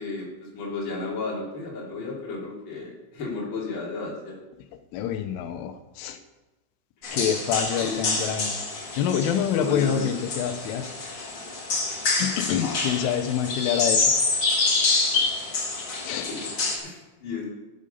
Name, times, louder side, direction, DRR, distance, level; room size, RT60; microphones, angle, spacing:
voice 1, 0.0-4.4 7.8-8.1 9.5-10.1 12.7-13.1 15.1-15.2 16.3-16.4 16.8-17.5, left 3 dB, 30° left, -4 dB, 2.8 m, -33 dB
voice 2, 4.9-6.2 7.1-8.5 9.0-10.8 12.2-14.1 16.0-16.3, left 9 dB, 90° left, 7 dB, 3.4 m, -26 dB
sound 1, 7.0-16.8, left 3 dB, 60° left, 1.1 m, -27 dB
12.0 x 8.7 x 5.5 m, 1.1 s
omnidirectional pair, 5.5 m